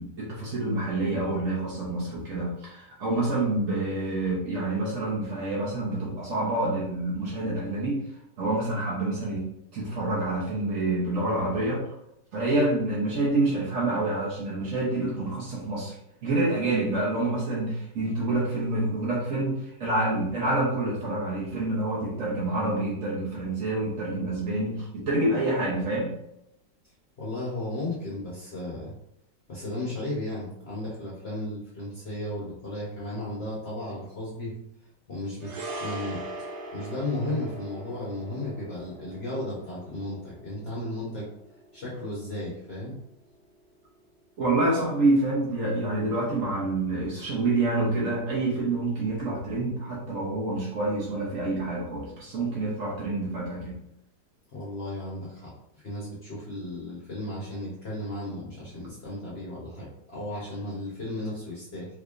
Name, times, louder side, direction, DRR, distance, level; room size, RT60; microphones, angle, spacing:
voice 1, 0.0-8.0 8.4-9.4 9.7-11.8 12.3-15.9 16.2-26.1 44.4-53.8, right 2 dB, 55° right, -4 dB, 1.1 m, -27 dB
voice 2, 27.2-28.9 29.5-34.5 35.1-35.5 35.8-36.2 36.7-41.3 41.7-42.9 54.5-55.5 55.8-61.9, left 1 dB, 45° left, -6 dB, 0.9 m, -34 dB
sound 1, 35.4-43.9 44.1-44.3, right 1 dB, 75° right, 1.1 m, -42 dB
3.4 x 3.3 x 2.5 m, 0.80 s
omnidirectional pair, 1.9 m